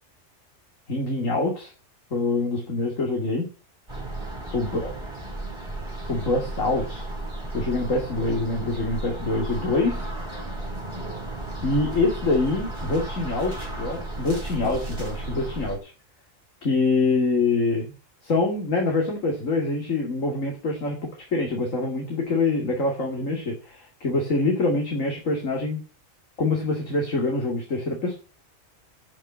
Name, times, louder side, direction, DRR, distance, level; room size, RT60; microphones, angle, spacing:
voice 1, 0.9-1.7 2.1-3.5 4.5-4.9 6.1-7.0 7.5-10.1 11.6-15.9 16.6-17.9 18.2-25.8 26.4-28.1, left 3 dB, 85° left, 0 dB, 2.8 m, -25 dB
sound 1, 3.9-15.8, right 2 dB, 20° right, 3.3 m, -34 dB
12.5 x 5.7 x 7.4 m, 0.35 s
omnidirectional pair, 1.3 m